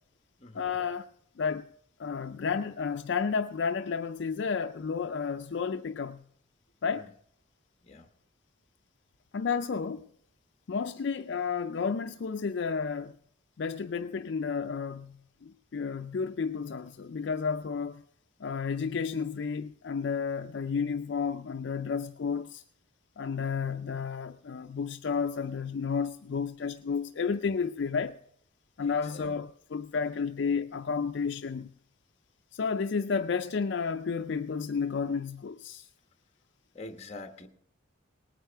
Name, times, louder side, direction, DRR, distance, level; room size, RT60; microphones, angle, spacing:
voice 1, 0.5-1.1 1.4-1.7 2.0-6.2 6.8-7.1 9.3-10.0 10.7-13.1 13.6-18.0 18.4-22.6 23.2-28.2 28.8-31.7 32.5-35.9, left 5 dB, 60° left, 0.4 m, -32 dB
voice 2, 28.8-29.3 36.7-37.5, left 2 dB, 30° left, 1.1 m, -45 dB
19.0 x 9.1 x 4.5 m
head